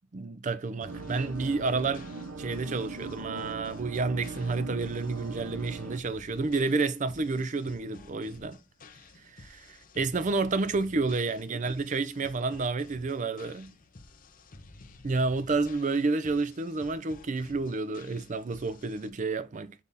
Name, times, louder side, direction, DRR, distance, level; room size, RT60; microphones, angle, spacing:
voice 1, 0.1-2.1 2.4-8.6 9.2-13.7 15.0-19.7, right 3 dB, 35° right, 0.5 m, -30 dB
sound 1, 0.8-19.1, left 3 dB, 40° left, 0.8 m, -52 dB
sound 2, 0.9-6.0, right 3 dB, 80° right, 0.7 m, -40 dB
7.3 x 3.5 x 4.0 m
head